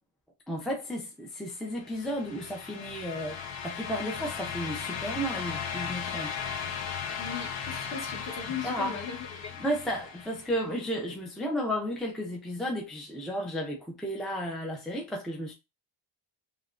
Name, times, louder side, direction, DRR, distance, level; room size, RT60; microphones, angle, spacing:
voice 1, 0.5-6.4 8.5-9.0 9.5-15.5, equal, ahead, 0.4 m, -33 dB
sound 1, 1.8-10.7, left 7 dB, 65° left, 0.7 m, -37 dB
voice 2, 7.2-9.5, left 6 dB, 35° left, 0.9 m, -38 dB
3.3 x 2.2 x 2.4 m
wide cardioid pair, 135°, 49 cm